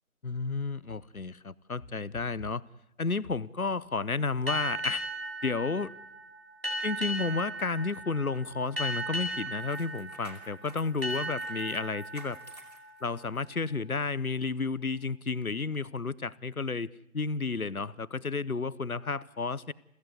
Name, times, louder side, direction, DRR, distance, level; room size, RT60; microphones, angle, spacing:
voice 1, 0.2-2.6 3.0-5.0 5.4-5.9 6.8-12.4 13.0-19.7, left 4 dB, 70° left, 21 dB, 1.0 m, -32 dB
sound 1, 4.5-13.7, right 1 dB, 40° right, 5.5 m, -37 dB
sound 2, 7.2-13.5 13.9-14.1, right 1 dB, 25° left, 2.6 m, -52 dB
30.0 x 16.5 x 8.2 m, 0.85 s
figure-of-eight pair, 180°, 44 cm